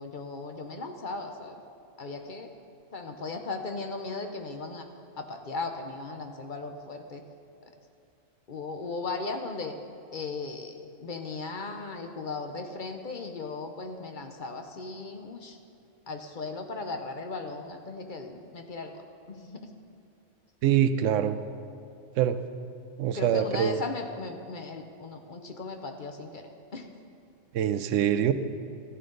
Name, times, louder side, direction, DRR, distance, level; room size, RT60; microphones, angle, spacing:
voice 1, 0.0-1.6 2.0-2.5 2.9-4.8 5.2-7.2 8.5-9.7 10.1-15.6 16.1-19.0 19.3-19.7 23.1-26.4 26.7-26.9, left 3 dB, 45° left, 5 dB, 0.8 m, -37 dB
voice 2, 20.6-21.4 22.2-22.4 23.0-23.8 27.5-28.3, right 10 dB, 90° right, 11 dB, 0.9 m, -24 dB
14.5 x 11.0 x 3.9 m, 2.5 s
omnidirectional pair, 1.3 m